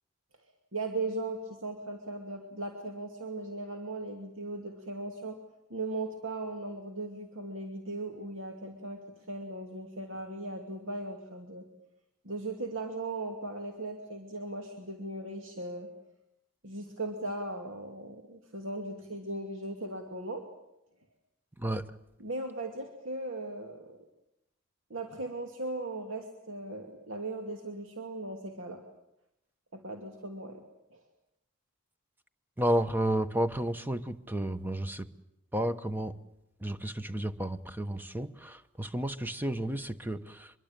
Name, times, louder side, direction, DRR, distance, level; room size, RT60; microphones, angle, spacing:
voice 1, 0.7-5.4 5.7-11.7 12.2-15.9 16.6-20.4 22.2-24.0 24.9-28.8 29.7-30.6 30.9-31.0, right 2 dB, 65° right, 3 dB, 2.6 m, -38 dB
voice 2, 32.6-35.1 35.5-36.1 36.6-38.3 38.8-40.2, right 1 dB, 10° right, 10 dB, 1.0 m, -31 dB
24.5 x 23.0 x 9.0 m, 0.86 s
head